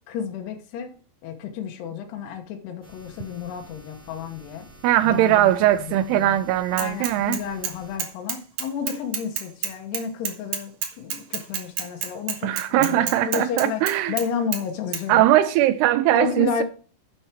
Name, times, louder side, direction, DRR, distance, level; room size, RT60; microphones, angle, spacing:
voice 1, 0.1-0.9 1.2-4.7 5.0-5.5 5.8-6.4 6.7-15.3 16.1-16.6, left 7 dB, 75° left, 3.0 m, -31 dB
sound 1, 2.8-8.0, right 1 dB, 5° right, 3.8 m, -49 dB
voice 2, 4.8-7.4 12.4-14.1 15.1-16.6, right 13 dB, 90° right, 2.3 m, -20 dB
Bicycle / Mechanisms, 6.8-7.7 8.0-14.3 14.5-14.6 14.9-15.0, right 8 dB, 65° right, 2.0 m, -29 dB
10.0 x 7.2 x 4.5 m
omnidirectional pair, 5.2 m